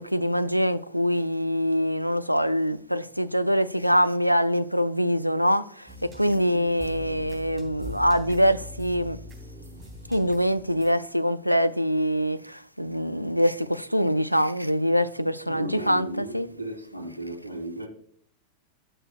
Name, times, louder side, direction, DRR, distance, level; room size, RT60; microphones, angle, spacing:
voice 1, 0.0-9.2 10.1-16.5, equal, 90° right, 0.4 m, -24 dB
sound 1, 5.9-10.9, equal, 25° right, 3.1 m, -41 dB
voice 2, 6.3-6.6 15.5-17.9, right 2 dB, 75° left, 2.2 m, -35 dB
12.0 x 6.6 x 2.3 m
figure-of-eight pair, 90°, 0 cm